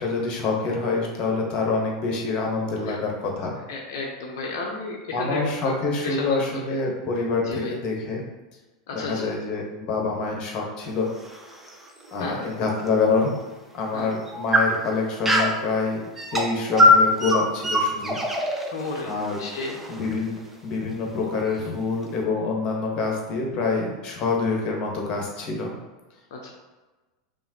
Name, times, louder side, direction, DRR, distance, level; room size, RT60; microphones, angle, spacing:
voice 1, 0.0-3.6 5.1-8.2 8.9-11.1 12.1-13.4 13.7-16.0 16.3-18.2 19.0-19.4 19.9-25.7, left 4 dB, 45° left, 0 dB, 1.2 m, -26 dB
voice 2, 3.7-5.8 6.0-6.8 7.4-7.7 8.9-9.3 12.2-12.5 13.9-14.1 18.7-19.8 26.3-26.5, left 3 dB, 65° left, -1 dB, 0.6 m, -33 dB
sound 1, 10.8-12.9 13.4-13.5 14.1-15.6 16.2-20.5, left 1 dB, 10° right, 0.7 m, -23 dB
5.5 x 2.6 x 2.8 m, 1.2 s
hypercardioid pair, 90°, 2 cm